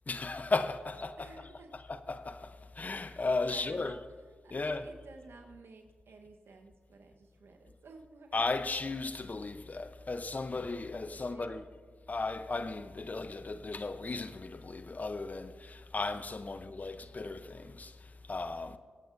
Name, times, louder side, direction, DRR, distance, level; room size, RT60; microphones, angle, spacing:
voice 1, 0.1-1.3 1.9-4.0 4.5-4.9 8.3-11.6 12.1-18.0 18.3-18.8, left 3 dB, 40° left, 0.8 m, -35 dB
voice 2, 1.2-1.7 3.1-4.0 4.4-8.4 11.1-11.7 16.4-16.8, right 3 dB, 75° right, 1.2 m, -54 dB
22.5 x 9.0 x 2.6 m
supercardioid pair, 40°, 4 cm